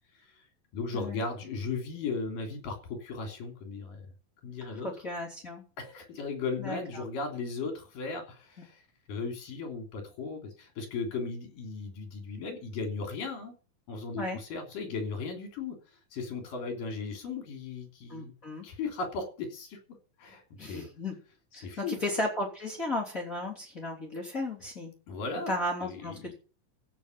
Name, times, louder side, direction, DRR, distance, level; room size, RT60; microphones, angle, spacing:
voice 1, 0.7-4.1 4.4-4.9 5.8-8.8 9.1-13.5 13.9-15.8 16.1-18.3 18.6-19.8 20.2-20.9 21.5-22.0 25.1-25.5 25.8-26.3, left 4 dB, 70° left, 3 dB, 4.8 m, -36 dB
voice 2, 4.8-5.6 6.6-7.0 14.2-14.4 18.1-18.6 20.6-21.1 21.5-24.9 25.5-26.3, left 1 dB, 25° left, -2 dB, 3.3 m, -34 dB
15.0 x 5.9 x 8.5 m, 0.38 s
omnidirectional pair, 4.1 m